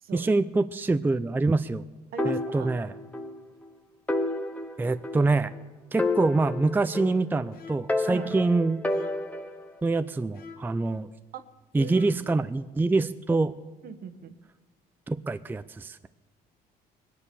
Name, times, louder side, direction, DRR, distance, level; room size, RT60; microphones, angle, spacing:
voice 1, 0.1-1.8 2.3-2.9 4.8-5.5 5.9-8.8 9.8-11.1 11.7-13.5 15.1-16.1, right 3 dB, 10° right, 11 dB, 0.5 m, -25 dB
voice 2, 2.1-2.7 8.1-8.3 11.3-11.4 11.8-12.0 13.8-14.3, right 7 dB, 60° right, 10 dB, 1.2 m, -39 dB
sound 1, 2.2-3.4 3.6-3.7 4.1-5.6 6.0-7.4 7.9-9.7, left 2 dB, 10° left, 1.1 m, -30 dB
sound 2, 7.5-8.0 8.9-9.4 10.3-10.8 11.8-12.3, left 4 dB, 65° left, 2.1 m, -46 dB
21.5 x 9.9 x 6.8 m, 1.3 s
cardioid pair, 110°, 17 cm